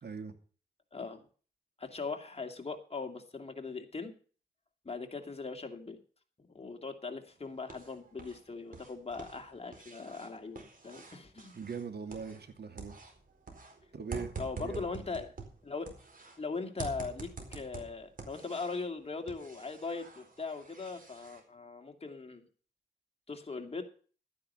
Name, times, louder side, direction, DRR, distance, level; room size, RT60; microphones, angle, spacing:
voice 1, 0.0-0.3 11.5-13.0 13.9-14.3 14.6-14.8, right 5 dB, 70° right, 7 dB, 2.5 m, -41 dB
voice 2, 0.9-1.2 1.8-4.1 4.8-6.0 6.5-11.5 14.4-15.3 15.6-15.9 16.4-22.4 23.3-23.8, left 4 dB, 35° left, 4 dB, 2.5 m, -40 dB
sound 1, 7.3-8.4 8.7-12.5 12.8-16.4 16.8-18.9 19.3-21.4, right 3 dB, 50° right, 4.4 m, -46 dB
13.0 x 9.8 x 5.6 m, 0.40 s
cardioid pair, 70°, 18 cm